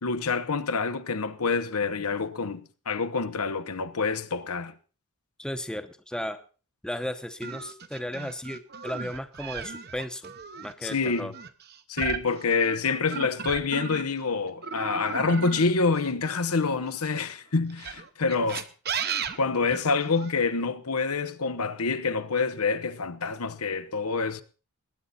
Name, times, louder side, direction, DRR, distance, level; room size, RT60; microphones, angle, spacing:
voice 1, 0.0-4.7 10.8-11.3 11.9-18.7 19.4-24.4, left 4 dB, 85° left, 1.0 m, -27 dB
voice 2, 5.4-6.4 6.8-10.3 10.6-11.3, left 1 dB, 5° left, 0.8 m, -35 dB
sound 1, 7.4-14.2 14.6-17.0 17.7-20.3, right 6 dB, 45° right, 0.9 m, -36 dB
20.5 x 9.6 x 4.2 m
head